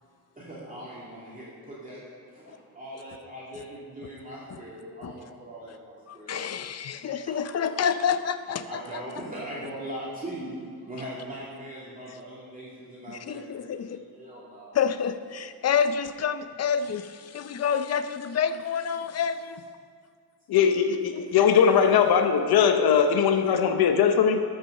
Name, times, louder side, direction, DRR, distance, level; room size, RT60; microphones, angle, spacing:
voice 1, 0.4-2.0 2.3-6.4 7.3-7.4 8.6-10.6 10.8-13.6 13.8-14.8 21.5-21.7, right 1 dB, 20° right, -8 dB, 2.5 m, -40 dB
voice 2, 6.1-9.0 13.1-14.0 14.7-19.6 21.1-21.3, left 7 dB, 45° left, 11 dB, 0.6 m, -28 dB
voice 3, 20.5-24.4, left 7 dB, 80° left, 6 dB, 0.8 m, -20 dB
12.5 x 6.1 x 6.5 m, 2.2 s
cardioid pair, 125°, 37 cm